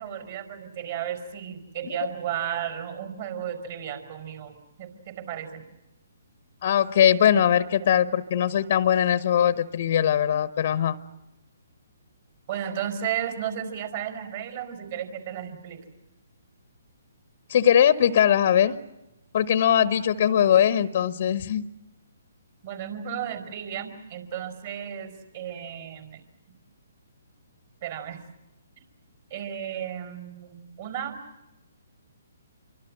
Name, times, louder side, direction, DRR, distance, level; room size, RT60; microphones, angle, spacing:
voice 1, 0.0-5.6 12.5-15.8 22.6-26.2 27.8-28.2 29.3-31.2, right 9 dB, 45° right, 9 dB, 5.1 m, -34 dB
voice 2, 6.6-11.0 17.5-18.8 19.3-21.7, left 9 dB, 50° left, 15 dB, 1.0 m, -21 dB
27.5 x 24.5 x 7.8 m, 0.97 s
figure-of-eight pair, 135°, 0 cm